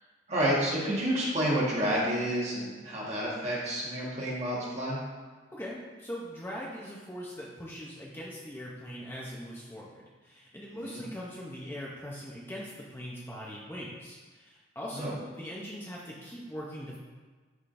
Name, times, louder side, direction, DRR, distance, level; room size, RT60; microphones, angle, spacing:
voice 1, 0.3-5.0 10.7-11.0 14.9-15.1, equal, 35° right, -6 dB, 1.5 m, -29 dB
voice 2, 5.5-17.0, equal, 10° left, -5 dB, 0.6 m, -41 dB
11.0 x 3.7 x 2.6 m, 1.3 s
head